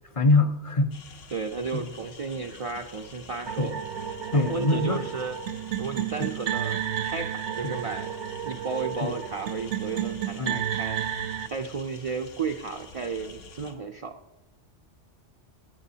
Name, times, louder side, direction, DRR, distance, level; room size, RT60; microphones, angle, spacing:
voice 1, 0.2-0.9 1.7-1.9 3.6-3.7 4.3-5.0 6.2-6.3 7.6-7.7 9.0-9.1 10.4-10.6, left 2 dB, 40° left, 8 dB, 0.5 m, -23 dB
sound 1, 0.9-13.7, left 4 dB, 80° left, 1.3 m, -48 dB
voice 2, 1.3-3.8 4.3-5.4 5.8-6.8 7.0-8.1 8.5-11.0 11.5-14.2, right 4 dB, 50° right, 4 dB, 0.4 m, -33 dB
sound 2, 3.5-11.5, right 10 dB, 70° right, 1.0 m, -32 dB
17.0 x 9.0 x 2.8 m, 0.97 s
omnidirectional pair, 1.2 m